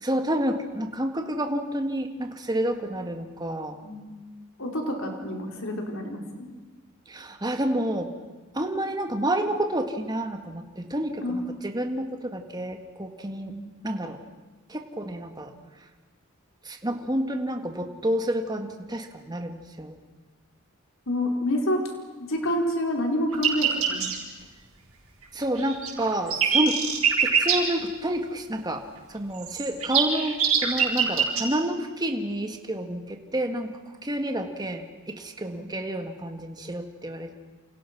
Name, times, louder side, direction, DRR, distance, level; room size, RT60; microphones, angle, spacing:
voice 1, 0.0-3.8 7.1-8.1 8.5-13.6 13.8-14.2 14.7-15.5 16.7-20.0 25.3-26.8 27.2-28.8 29.1-33.7 34.0-37.3, right 1 dB, 20° right, 5 dB, 1.9 m, -29 dB
voice 2, 3.8-4.2 4.6-6.5 11.2-11.6 13.4-13.6 21.1-21.8 22.2-24.2 35.5-35.7, left 1 dB, 65° left, 2 dB, 4.7 m, -28 dB
sound 1, 23.3-24.1 25.4-27.6 29.4-31.4, right 7 dB, 75° right, 5.5 m, -23 dB
29.0 x 28.0 x 6.1 m, 1.3 s
head